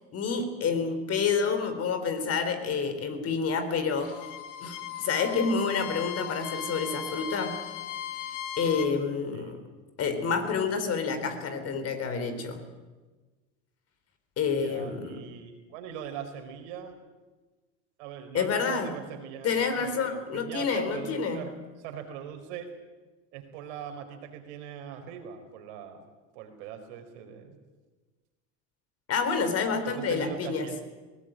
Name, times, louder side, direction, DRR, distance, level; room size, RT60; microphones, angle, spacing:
voice 1, 0.1-4.1 4.6-7.6 8.6-9.6 10.0-12.6 14.4-15.2 18.3-18.9 19.4-21.4 29.1-30.7, left 5 dB, 40° left, 8 dB, 4.0 m, -28 dB
Bowed string instrument, 3.9-8.9, left 9 dB, 55° left, 2.8 m, -38 dB
voice 2, 9.3-9.6 14.5-16.9 18.0-21.5 21.8-22.7 23.3-26.1 26.3-27.6 29.9-30.8, right 8 dB, 70° right, 5 dB, 4.5 m, -41 dB
20.5 x 18.0 x 9.1 m, 1.3 s
hypercardioid pair, 95°, 37 cm